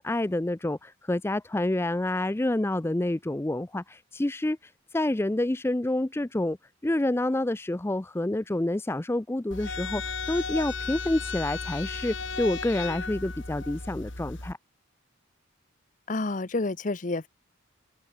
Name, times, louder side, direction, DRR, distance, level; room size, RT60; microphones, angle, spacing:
voice 1, 0.0-6.6 6.8-14.6, left 1 dB, 10° left, 0.4 m, -28 dB
sound 1, 9.5-14.5, left 4 dB, 60° left, 3.2 m, -35 dB
voice 2, 16.1-17.3, left 2 dB, 35° left, 0.7 m, -29 dB
head